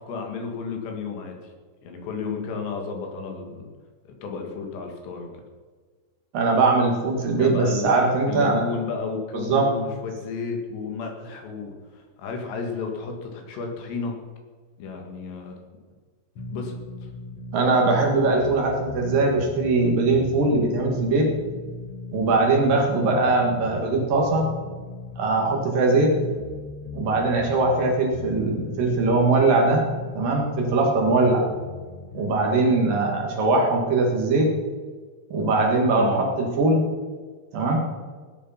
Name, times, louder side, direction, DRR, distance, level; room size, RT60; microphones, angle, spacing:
voice 1, 0.0-1.5 1.8-3.7 4.2-5.3 7.4-7.9 8.3-14.1 14.8-15.6 16.5-17.1 33.5-33.6 36.0-36.3, left 5 dB, 75° left, 3 dB, 4.1 m, -32 dB
voice 2, 6.3-8.6 9.3-9.7 17.5-21.3 22.1-24.5 25.2-26.1 26.9-29.8 30.2-31.4 32.1-34.5 35.3-36.8 37.5-37.8, right 3 dB, 60° right, 1 dB, 3.1 m, -21 dB
sound 1, 16.3-32.4, left 3 dB, 90° left, 1.2 m, -38 dB
17.5 x 10.0 x 5.7 m, 1.5 s
omnidirectional pair, 5.1 m